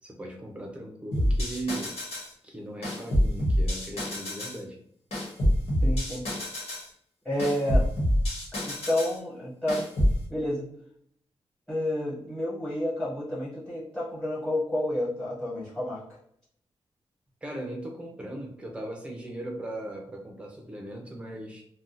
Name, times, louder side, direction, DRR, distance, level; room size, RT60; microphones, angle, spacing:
voice 1, 0.0-2.0 2.4-4.8 17.4-21.6, right 1 dB, 10° right, 0 dB, 0.7 m, -38 dB
sound 1, 1.1-2.3 2.8-4.6 5.1-6.9 7.4-9.2 9.7-10.2, equal, 75° left, 1.4 m, -26 dB
voice 2, 5.8-6.2 7.2-7.9 8.6-9.9 10.3-10.7 11.7-16.0, left 1 dB, 5° left, -5 dB, 1.4 m, -30 dB
3.4 x 2.3 x 2.6 m, 0.68 s
wide cardioid pair, 150°, 10 cm